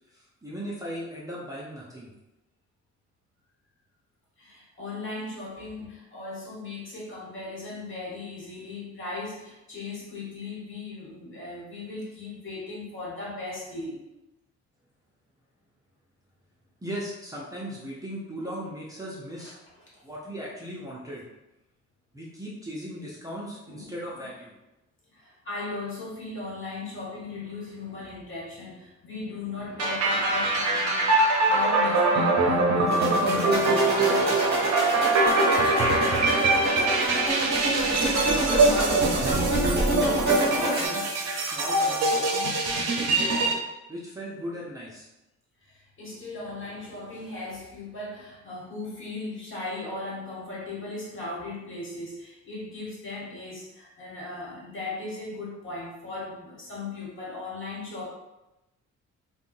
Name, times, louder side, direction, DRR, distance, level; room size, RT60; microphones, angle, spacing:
voice 1, 0.1-2.1 16.8-19.5 20.0-21.2 22.1-24.5 37.9-39.5 39.7-41.1 41.4-43.5 43.9-45.1, equal, 10° right, -6 dB, 0.6 m, -37 dB
voice 2, 4.4-14.0 19.4-19.5 23.7-24.3 25.1-34.6 45.6-58.1, left 3 dB, 45° left, -5 dB, 1.2 m, -37 dB
sound 1, 29.8-43.5, right 2 dB, 60° right, 0.6 m, -23 dB
sound 2, 32.9-40.9, right 1 dB, 35° right, 1.2 m, -27 dB
3.5 x 2.2 x 2.6 m, 0.96 s
cardioid pair, 100°, 29 cm